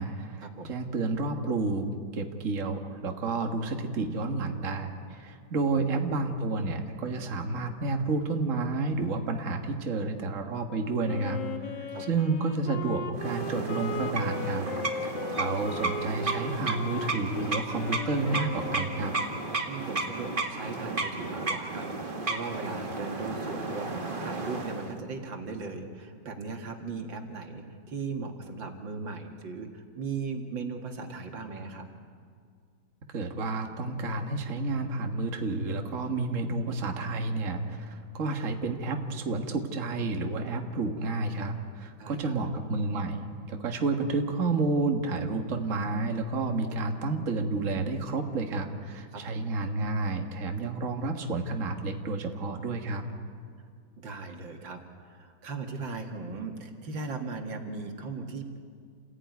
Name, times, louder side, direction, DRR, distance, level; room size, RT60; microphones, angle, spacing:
voice 1, 0.0-1.9 2.1-11.4 11.7-14.7 15.0-19.1 33.1-53.0, right 3 dB, 45° right, 4 dB, 1.9 m, -30 dB
Wind instrument woodwind instrument, 11.1-19.2, left 3 dB, 70° left, 2.2 m, -37 dB
sound 1, 13.1-25.0, right 3 dB, 30° right, 1.9 m, -33 dB
voice 2, 19.7-23.9 24.2-31.9 42.0-42.4 49.1-49.5 54.0-58.6, right 4 dB, 80° right, 4 dB, 2.7 m, -38 dB
28.5 x 16.5 x 9.4 m, 2.2 s
omnidirectional pair, 2.0 m